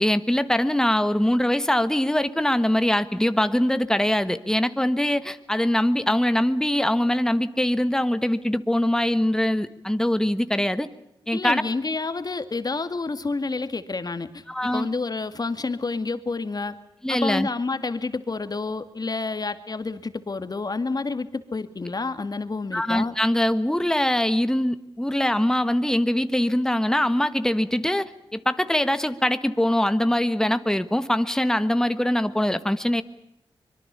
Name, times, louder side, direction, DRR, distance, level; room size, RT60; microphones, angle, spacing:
voice 1, 0.0-10.9 11.3-11.6 14.5-14.9 17.0-17.5 22.7-33.0, left 1 dB, 5° left, 12 dB, 1.5 m, -23 dB
voice 2, 11.3-14.4 14.7-16.8 17.1-23.2, left 3 dB, 40° left, 10 dB, 2.2 m, -29 dB
25.0 x 22.5 x 6.9 m, 0.89 s
cardioid pair, 65°, 10 cm